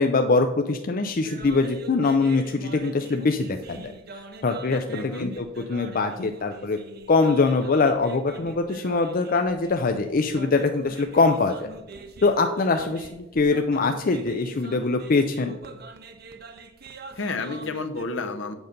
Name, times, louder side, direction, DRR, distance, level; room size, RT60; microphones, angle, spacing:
voice 1, 0.0-3.9 4.4-6.8 7.1-11.7 12.2-15.5, left 3 dB, 45° left, 6 dB, 0.5 m, -23 dB
sound 1, 1.1-18.0, right 3 dB, 55° right, 0.8 m, -44 dB
voice 2, 4.9-5.3 17.2-18.5, left 3 dB, 70° left, 8 dB, 0.8 m, -30 dB
8.0 x 6.5 x 5.3 m, 0.99 s
head